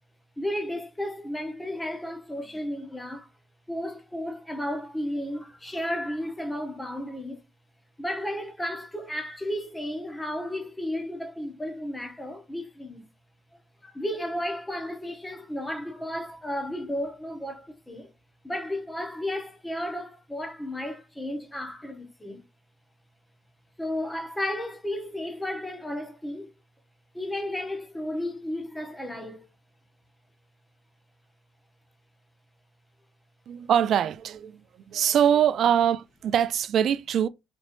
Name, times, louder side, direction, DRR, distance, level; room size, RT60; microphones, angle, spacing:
voice 1, 0.4-3.3 3.7-7.4 8.0-13.1 13.8-18.1 18.4-22.4 23.8-26.5 27.1-29.5, left 1 dB, 10° left, 1.0 m, -33 dB
voice 2, 33.5-34.6 34.9-37.3, right 9 dB, 70° right, 0.4 m, -23 dB
4.2 x 3.1 x 2.5 m
cardioid pair, 90°, 0 cm